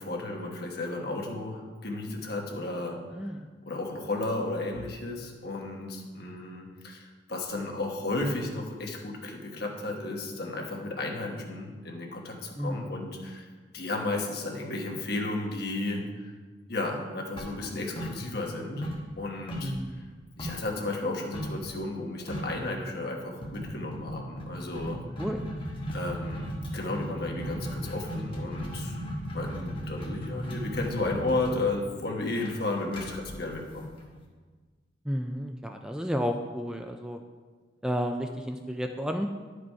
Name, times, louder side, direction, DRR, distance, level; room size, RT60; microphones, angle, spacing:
voice 1, 0.0-3.3 3.7-13.5 13.7-16.3 16.7-19.7 20.4-25.0 25.9-26.5 26.7-28.9 29.3-33.9, left 2 dB, 60° left, 0 dB, 1.3 m, -33 dB
voice 2, 3.1-3.4 12.6-12.8 19.6-20.0 25.2-25.4 35.1-37.2 37.8-39.3, equal, 5° right, 4 dB, 0.3 m, -31 dB
sound 1, 17.4-18.6 18.8-20.7 21.3-21.6 21.9-22.0 22.3-22.6 23.4-34.2, equal, 30° left, 1.2 m, -36 dB
10.5 x 4.9 x 4.7 m, 1.4 s
head